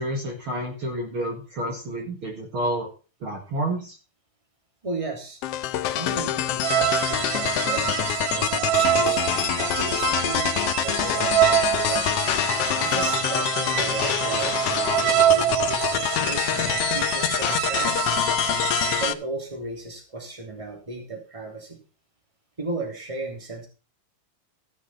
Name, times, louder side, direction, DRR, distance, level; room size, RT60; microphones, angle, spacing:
voice 1, 0.0-2.9 3.2-4.0, right 1 dB, 50° right, 0 dB, 2.5 m, -29 dB
voice 2, 4.8-5.4 5.9-12.1 12.7-18.2 19.0-21.8 22.6-23.7, right 2 dB, 10° right, 1 dB, 3.0 m, -35 dB
sound 1, 5.4-19.1, left 13 dB, 75° left, 1.4 m, -26 dB
sound 2, 6.6-19.1, right 13 dB, 75° right, 2.0 m, -25 dB
15.0 x 6.1 x 5.8 m, 0.34 s
omnidirectional pair, 3.4 m